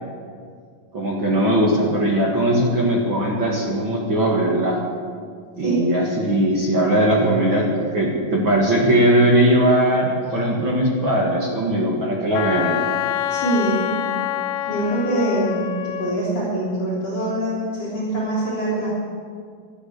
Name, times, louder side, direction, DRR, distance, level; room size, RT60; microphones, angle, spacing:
voice 1, 0.9-4.8 5.6-12.7, right 1 dB, 45° right, -2 dB, 1.7 m, -19 dB
Wind instrument woodwind instrument, 12.3-16.2, left 11 dB, 85° left, 2.7 m, -26 dB
voice 2, 13.3-13.9 14.7-18.9, right 1 dB, 40° left, -7 dB, 4.5 m, -24 dB
13.0 x 12.5 x 8.3 m, 2.1 s
omnidirectional pair, 4.7 m